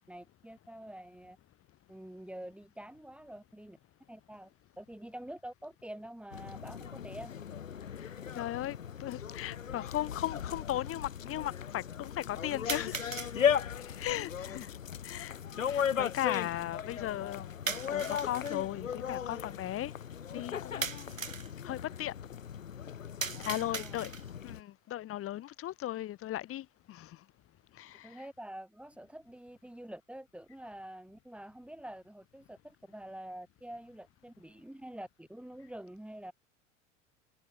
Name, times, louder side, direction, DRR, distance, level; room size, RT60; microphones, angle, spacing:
voice 1, 0.1-1.4 1.9-3.8 4.1-4.5 4.8-7.3 23.3-24.0 28.0-36.3, right 1 dB, 5° right, 4.4 m, -47 dB
sound 1, 6.3-24.6, left 8 dB, 75° left, 1.9 m, -37 dB
voice 2, 8.0-13.3 13.9-14.7 15.0-15.4 15.7-17.5 17.9-19.9 20.3-21.2 21.6-22.1 23.5-24.1 24.4-27.2 27.8-28.1, left 13 dB, 35° left, 2.2 m, -37 dB
sound 2, 8.3-8.4 9.4-9.5 12.7-13.4 17.7-18.6 20.8-21.5 23.2-24.4, right 5 dB, 80° right, 4.7 m, -38 dB
figure-of-eight pair, 80°, 39 cm